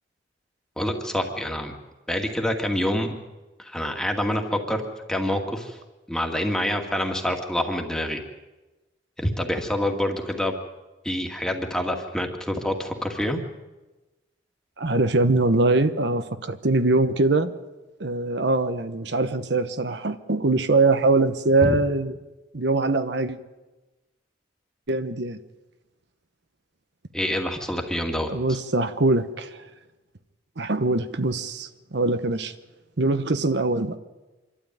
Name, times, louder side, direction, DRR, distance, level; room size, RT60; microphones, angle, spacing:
voice 1, 0.8-1.7 2.1-3.2 3.6-4.8 5.1-5.8 6.1-8.2 9.2-10.6 11.0-13.4 21.6-21.7 27.1-28.3, left 1 dB, 5° left, 3 dB, 2.2 m, -26 dB
voice 2, 14.8-17.5 18.0-22.1 22.5-23.4 24.9-25.4 28.3-29.7 30.6-32.5 33.0-34.0, right 2 dB, 65° right, 10 dB, 1.0 m, -22 dB
26.5 x 12.5 x 9.3 m, 1.1 s
head